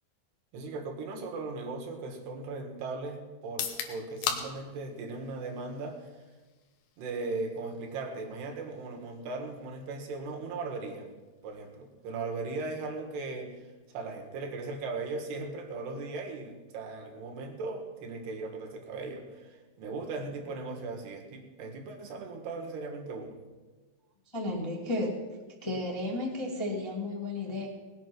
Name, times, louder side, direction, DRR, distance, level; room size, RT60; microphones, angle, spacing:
voice 1, 0.5-6.1 7.0-11.1 11.4-23.4, right 3 dB, 90° right, 3 dB, 3.8 m, -38 dB
sound 1, 3.4-17.3, left 7 dB, 85° left, 3.3 m, -44 dB
voice 2, 24.3-25.2 25.6-27.7, left 2 dB, 10° left, -2 dB, 1.3 m, -33 dB
19.0 x 8.9 x 6.1 m, 1.3 s
omnidirectional pair, 4.6 m